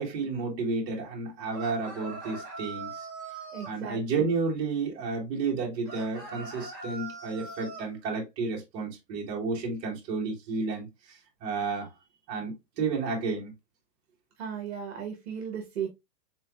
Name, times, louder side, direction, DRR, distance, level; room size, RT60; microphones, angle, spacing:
voice 1, 0.0-2.9 3.6-11.9 12.3-13.5, right 4 dB, 20° right, 1.2 m, -31 dB
sound 1, 1.5-3.7 5.8-7.9, right 3 dB, 5° left, 0.6 m, -41 dB
voice 2, 3.5-4.3 14.4-15.9, right 8 dB, 40° right, 1.1 m, -36 dB
4.3 x 3.9 x 2.3 m
hypercardioid pair, 165°, 49 cm